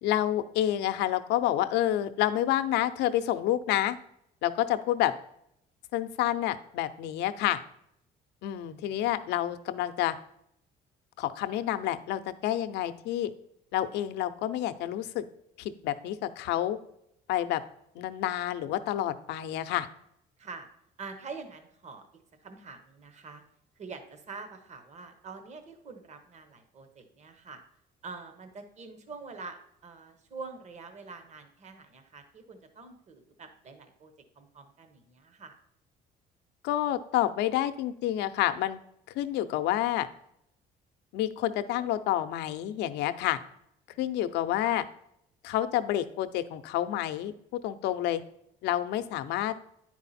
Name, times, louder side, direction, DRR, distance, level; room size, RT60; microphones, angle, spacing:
voice 1, 0.0-4.0 4.4-5.1 5.9-7.6 8.4-10.2 11.2-13.3 13.7-15.2 15.6-16.8 17.3-17.6 18.0-19.9 36.6-38.8 39.1-40.1 41.1-43.4 44.0-44.8 45.4-48.2 48.6-49.5, left 12 dB, 85° left, 11 dB, 0.6 m, -29 dB
voice 2, 8.6-9.1 20.4-20.7 21.0-22.1 22.4-23.4 23.8-27.6 28.0-35.5 43.9-44.1 44.6-44.8, right 4 dB, 45° right, 8 dB, 1.1 m, -45 dB
9.7 x 4.7 x 4.1 m, 0.75 s
cardioid pair, 110°, 17 cm